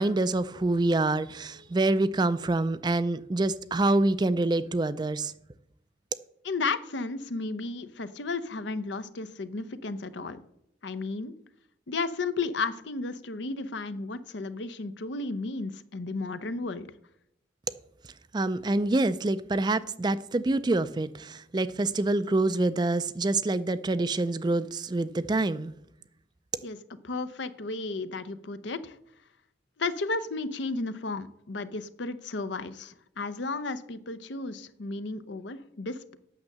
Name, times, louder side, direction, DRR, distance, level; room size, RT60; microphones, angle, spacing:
voice 1, 0.0-5.3 18.3-25.7, right 2 dB, 25° right, 0.4 m, -26 dB
voice 2, 6.4-10.4 10.8-11.3 11.9-16.9 26.6-26.8 27.0-29.0 29.8-36.2, left 3 dB, 70° left, 0.7 m, -33 dB
8.8 x 6.5 x 7.4 m
head